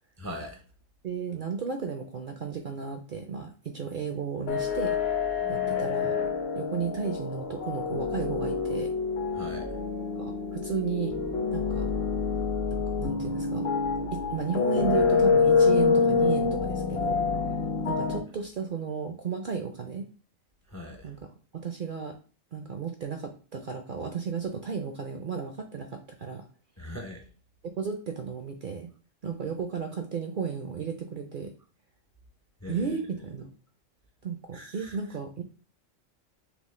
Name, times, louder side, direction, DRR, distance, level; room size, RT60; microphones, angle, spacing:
voice 1, 0.2-0.6 9.4-9.7 20.7-21.1 26.8-27.3 32.6-32.9 34.5-35.0, left 1 dB, 25° left, 2 dB, 0.3 m, -40 dB
voice 2, 1.0-5.0 5.5-6.2 6.5-8.9 10.2-11.1 11.5-11.9 12.7-13.7 14.1-17.2 17.8-20.1 21.0-21.2 21.5-22.2 22.5-26.4 27.8-28.9 29.2-31.5 32.7-33.5 34.2-35.4, right 6 dB, 60° right, 5 dB, 0.5 m, -34 dB
sound 1, 4.5-18.2, left 5 dB, 55° left, 1.0 m, -27 dB
5.9 x 2.1 x 3.2 m, 0.35 s
omnidirectional pair, 1.3 m